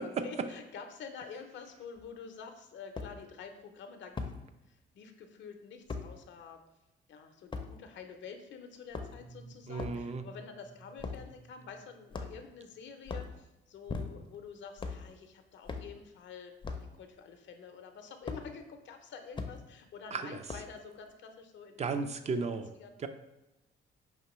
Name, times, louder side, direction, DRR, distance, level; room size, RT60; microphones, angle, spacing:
voice 1, 0.0-6.6 7.1-16.5 16.8-21.9 22.2-23.0, left 6 dB, 70° left, 6 dB, 0.6 m, -48 dB
sound 1, 2.0-2.1 3.0-3.1 4.2-4.4 5.9-6.1 7.5-7.7 8.8-9.3 9.8-10.0 11.0-11.3 12.1-12.5 13.0-13.3 13.9-14.4 14.8-15.0 15.7-15.9 16.6-16.9 18.3-18.4 19.3-19.5 20.5-20.8, left 4 dB, 25° left, 0.5 m, -38 dB
sound 2, 9.1-12.8, right 2 dB, 85° right, 1.1 m, -54 dB
voice 2, 9.7-10.2 20.1-20.4 21.8-22.7 23.0-23.1, right 4 dB, 35° right, 9 dB, 0.4 m, -34 dB
5.6 x 3.0 x 3.0 m, 0.94 s
cardioid pair, 90°, 20 cm